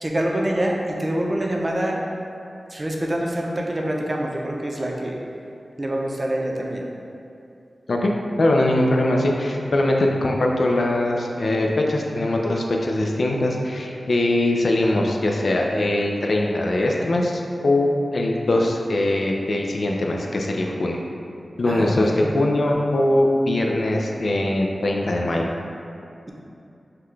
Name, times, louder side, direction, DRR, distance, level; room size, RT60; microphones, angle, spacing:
voice 1, 0.0-2.1 2.7-5.2 5.8-6.9 21.6-22.4, right 1 dB, 35° right, -1 dB, 0.6 m, -25 dB
voice 2, 8.4-21.0 21.6-25.5, left 1 dB, 70° left, 0 dB, 0.4 m, -21 dB
5.7 x 2.2 x 3.2 m, 2.7 s
cardioid pair, 55°, 0 cm